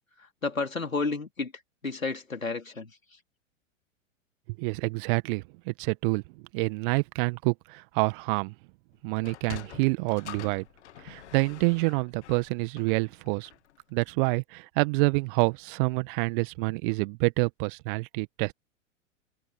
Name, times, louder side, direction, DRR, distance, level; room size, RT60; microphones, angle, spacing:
voice 1, 0.4-1.5 1.8-2.9, left 4 dB, 85° left, 4.2 m, -31 dB
voice 2, 4.6-6.2 6.5-8.5 9.0-10.7 11.0-13.5 13.9-18.5, right 28 dB, 40° right, 1.7 m, -27 dB
Sliding door, 9.1-13.8, left 11 dB, 55° left, 2.0 m, -46 dB
figure-of-eight pair, 100°, 39 cm